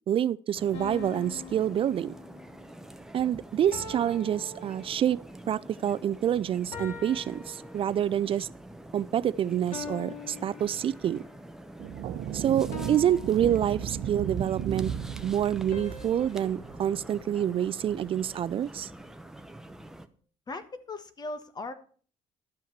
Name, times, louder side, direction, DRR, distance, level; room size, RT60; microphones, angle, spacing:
voice 1, 0.1-2.1 3.1-5.2 5.5-8.5 8.9-11.2 12.3-14.9 15.2-18.9, right 10 dB, 50° right, 0.4 m, -27 dB
sound 1, 0.5-20.1, right 1 dB, 5° right, 0.9 m, -47 dB
sound 2, 0.7-2.7 3.7-5.4 6.7-8.3 9.7-11.4 12.7-14.3 15.7-18.1, left 4 dB, 75° left, 2.8 m, -44 dB
sound 3, 11.8-17.4, right 9 dB, 75° right, 0.9 m, -35 dB
voice 2, 20.5-21.7, left 2 dB, 35° left, 1.3 m, -38 dB
12.5 x 5.7 x 7.3 m
cardioid pair, 105°, 12 cm